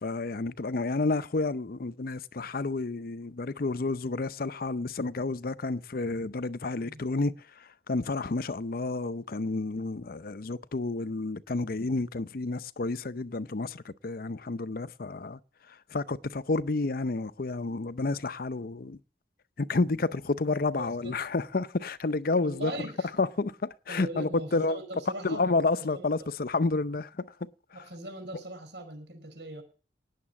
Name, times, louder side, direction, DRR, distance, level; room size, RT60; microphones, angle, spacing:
voice 1, 0.0-7.3 7.9-15.4 15.9-19.0 19.6-22.8 23.2-24.8 25.2-27.3, left 3 dB, 55° left, 0.6 m, -30 dB
voice 2, 6.7-7.0 20.7-21.2 22.4-23.1 23.9-25.4 25.8-26.3 27.7-29.6, right 2 dB, 75° right, 5.0 m, -40 dB
18.5 x 7.4 x 7.2 m
head